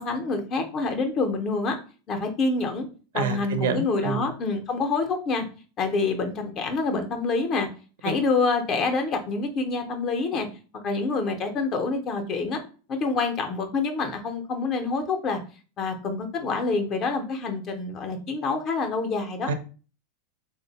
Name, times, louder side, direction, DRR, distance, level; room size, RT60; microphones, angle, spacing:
voice 1, 0.0-1.7 2.1-2.9 3.1-5.4 5.8-7.7 8.0-10.5 10.8-12.6 12.9-15.4 15.8-19.5, left 3 dB, 25° left, 5 dB, 0.5 m, -27 dB
voice 2, 3.1-4.3 8.0-8.1 19.5-19.6, right 5 dB, 80° right, 10 dB, 0.6 m, -27 dB
3.3 x 2.1 x 4.0 m, 0.36 s
supercardioid pair, 175°, 0 cm